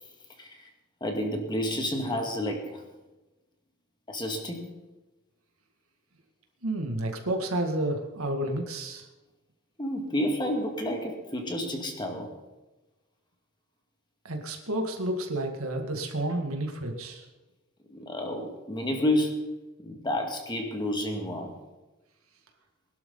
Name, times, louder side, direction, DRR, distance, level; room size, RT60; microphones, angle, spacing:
voice 1, 1.0-2.8 4.1-4.7 9.8-12.3 17.9-19.6 19.8-21.6, left 1 dB, 20° left, 2 dB, 2.1 m, -30 dB
voice 2, 6.6-9.1 14.2-17.2, right 1 dB, 85° right, 4 dB, 2.1 m, -30 dB
21.0 x 12.0 x 4.0 m, 1.1 s
head